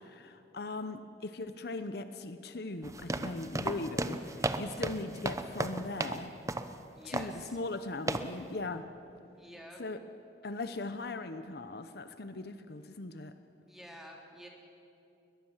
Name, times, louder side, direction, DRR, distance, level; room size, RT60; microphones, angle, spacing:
voice 1, 0.0-6.3 7.0-8.9 9.8-10.0 10.4-13.3, left 2 dB, 60° left, 10 dB, 0.8 m, -39 dB
sound 1, 2.8-6.2 6.5-6.7 7.1-7.4 8.1-8.3, right 2 dB, 20° right, 0.8 m, -34 dB
voice 2, 6.9-7.6 9.4-9.8 13.7-14.5, equal, ahead, 0 dB, 3.1 m, -49 dB
21.5 x 21.0 x 7.3 m, 2.7 s
head